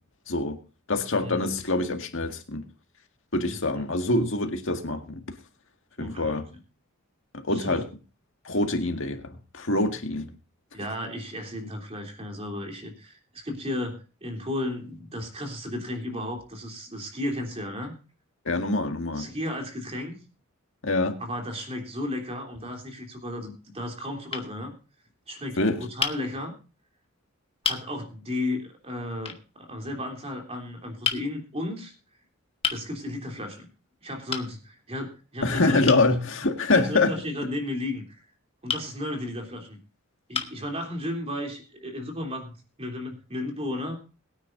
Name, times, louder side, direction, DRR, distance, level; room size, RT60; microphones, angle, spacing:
voice 1, 0.3-0.6 0.9-2.6 3.3-5.2 6.0-6.4 7.3-7.9 8.5-10.3 18.5-19.3 20.8-21.2 25.6-25.8 35.4-37.2, left 2 dB, 65° left, 1.9 m, -25 dB
voice 2, 1.2-1.5 3.5-3.8 6.0-6.4 7.5-7.8 10.7-17.9 19.1-20.2 21.2-24.7 25.3-26.5 27.6-31.9 32.7-33.7 34.0-36.0 36.7-38.2 38.6-39.8 40.3-44.0, left 1 dB, 30° right, 3.3 m, -34 dB
sound 1, 22.5-23.1 23.9-24.0 24.3-24.5 26.0-26.2 27.0-27.1 27.6-27.9 29.2-29.4 31.0-31.3 32.6-32.8 34.3-34.5 35.9-36.1 38.7-38.9 39.7-39.8 40.3-40.6, left 6 dB, 25° left, 1.3 m, -30 dB
22.0 x 9.5 x 2.6 m
head